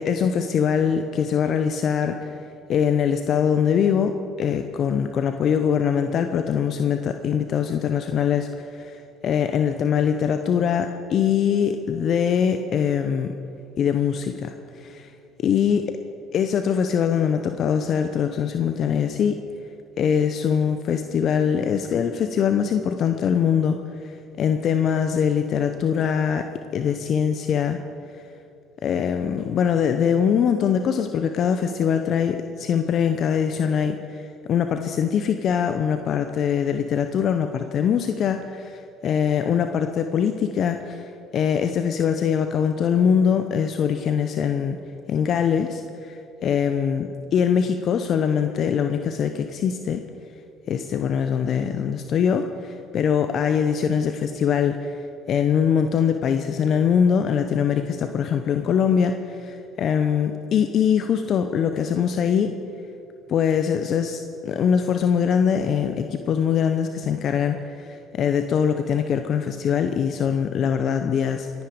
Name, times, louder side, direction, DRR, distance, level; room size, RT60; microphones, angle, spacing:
voice 1, 0.0-2.3 2.7-13.4 13.8-15.1 15.4-15.8 16.3-19.4 20.0-23.8 24.0-27.8 28.8-44.8 45.1-50.0 50.7-55.0 55.3-62.6 63.3-71.5, left 7 dB, 55° left, 7 dB, 0.8 m, -23 dB
23.5 x 9.6 x 5.1 m, 2.6 s
hypercardioid pair, 65°, 0 cm